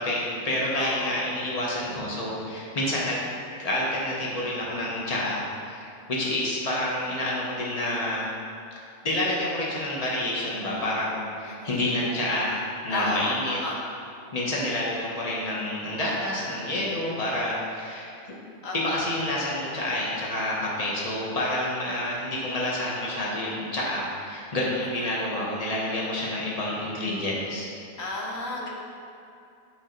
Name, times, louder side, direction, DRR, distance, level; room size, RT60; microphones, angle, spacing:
voice 1, 0.0-3.2 3.6-8.3 9.0-13.6 14.3-18.1 18.7-27.7, left 1 dB, 30° left, -5 dB, 1.4 m, -28 dB
voice 2, 0.7-1.1 11.5-11.7 12.9-13.8 18.6-19.0 25.0-25.1 28.0-28.7, left 2 dB, 75° left, -2 dB, 1.5 m, -32 dB
7.4 x 6.5 x 4.0 m, 2.6 s
omnidirectional pair, 1.4 m